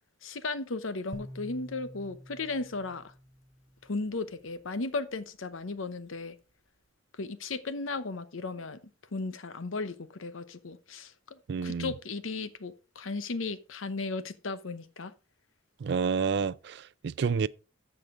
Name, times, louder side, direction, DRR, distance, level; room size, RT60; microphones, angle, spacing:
voice 1, 0.2-3.1 3.8-6.4 7.2-8.8 9.1-15.1 17.2-17.3, left 3 dB, 85° left, 0.8 m, -36 dB
sound 1, 1.1-4.4, equal, 15° left, 0.9 m, -48 dB
voice 2, 11.5-11.9 15.8-16.8 17.0-17.5, right 5 dB, 55° right, 0.3 m, -28 dB
14.0 x 5.0 x 3.7 m
head